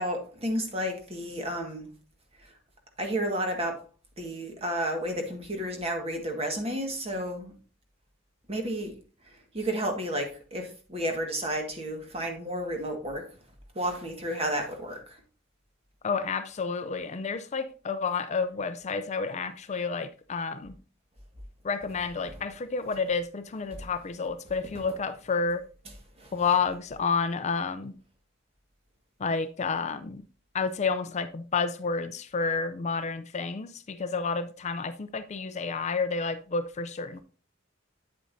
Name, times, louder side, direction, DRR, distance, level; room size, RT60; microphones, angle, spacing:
voice 1, 0.0-1.9 2.4-2.5 3.0-3.8 4.2-7.5 8.5-8.9 9.2-13.3 13.8-15.2 22.2-22.3 23.8-23.9 26.2-26.3, right 1 dB, 30° right, 1.7 m, -32 dB
voice 2, 16.0-20.8 21.6-25.6 26.3-28.0 29.2-30.2 30.5-37.2, left 5 dB, 35° left, 0.5 m, -30 dB
8.9 x 8.1 x 2.7 m
head